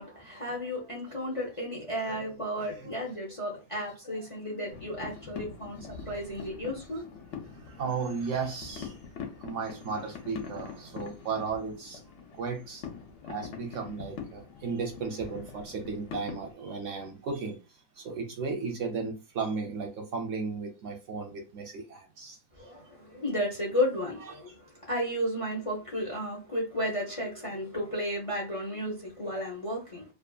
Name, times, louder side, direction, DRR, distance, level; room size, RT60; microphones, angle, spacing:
voice 1, 0.0-7.1 22.5-30.0, equal, 40° left, 0.5 m, -33 dB
voice 2, 2.6-2.9 7.5-9.0 9.4-12.0 12.3-12.9 13.2-22.4 24.2-24.4, right 5 dB, 70° right, 0.8 m, -35 dB
sound 1, 4.7-16.5, left 6 dB, 65° left, 0.8 m, -44 dB
2.7 x 2.3 x 2.3 m
omnidirectional pair, 1.5 m